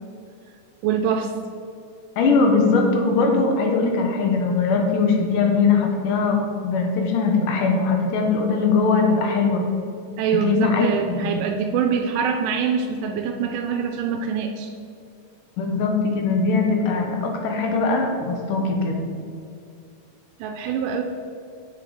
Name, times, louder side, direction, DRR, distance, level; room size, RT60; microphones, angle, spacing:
voice 1, 0.8-1.3 10.2-14.7 20.4-21.0, right 7 dB, 85° right, 4 dB, 2.1 m, -24 dB
voice 2, 2.2-6.4 6.6-9.6 10.4-11.4 15.6-18.9, left 4 dB, 85° left, 1 dB, 2.7 m, -20 dB
7.7 x 6.3 x 4.9 m, 2.5 s
omnidirectional pair, 3.7 m